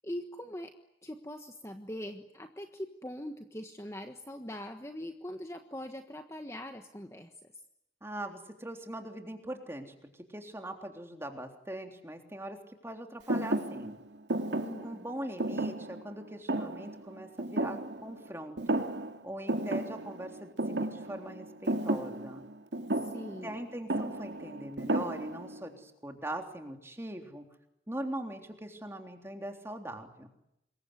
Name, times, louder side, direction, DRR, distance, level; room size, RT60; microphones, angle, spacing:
voice 1, 0.0-0.7 1.0-7.3 14.6-15.0 23.0-23.6, left 1 dB, 15° left, 5 dB, 1.4 m, -42 dB
voice 2, 8.0-14.0 14.8-18.8 19.2-22.4 23.4-27.5 27.9-30.3, right 1 dB, 15° right, 4 dB, 3.5 m, -41 dB
Thump thud, 13.3-18.3 18.6-19.2 19.5-25.6, right 1 dB, 90° right, 2.6 m, -33 dB
27.0 x 22.5 x 9.7 m, 0.81 s
head